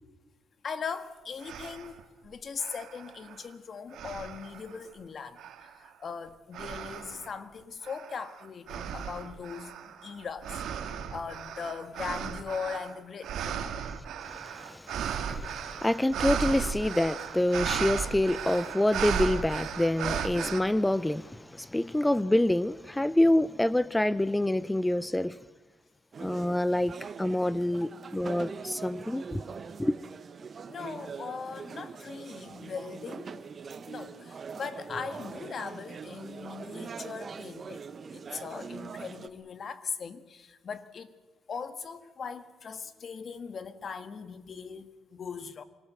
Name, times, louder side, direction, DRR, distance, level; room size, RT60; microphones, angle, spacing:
voice 1, 0.6-2.0 2.2-13.7 30.7-33.5 33.9-37.8 38.1-41.1 41.5-45.6, left 6 dB, 50° left, 1.7 m, -39 dB
sound 1, 0.9-1.0 1.4-2.0 2.6-3.5 3.9-4.8 5.4-5.9 6.5-7.3 7.8-20.6, right 8 dB, 75° right, 2.0 m, -35 dB
voice 2, 14.2-25.4 26.2-26.9 27.2-29.4 29.8-29.9, left 1 dB, 10° left, 0.8 m, -27 dB
sound 2, 26.1-39.3, right 5 dB, 45° right, 1.2 m, -42 dB
25.0 x 18.5 x 7.9 m
cardioid pair, 90°, 0 cm